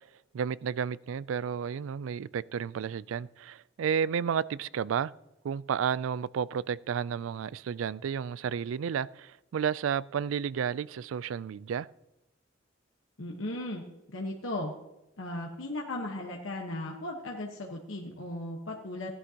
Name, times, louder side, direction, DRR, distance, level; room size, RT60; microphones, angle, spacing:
voice 1, 0.3-5.1 5.4-11.9, right 7 dB, 90° right, 0.3 m, -32 dB
voice 2, 13.2-13.8 14.1-14.7 15.2-19.1, left 1 dB, 90° left, 1.3 m, -36 dB
16.5 x 11.0 x 2.9 m
head